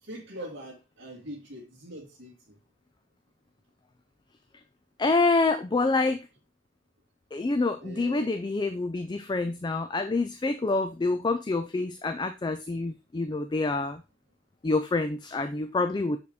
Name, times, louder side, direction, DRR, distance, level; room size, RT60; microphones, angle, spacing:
voice 1, 0.0-2.6 7.8-8.3, right 1 dB, 65° right, -5 dB, 1.7 m, -42 dB
voice 2, 5.0-6.3 7.3-14.0 14.6-16.2, left 3 dB, 20° left, 8 dB, 0.3 m, -27 dB
6.3 x 4.7 x 3.5 m, 0.28 s
head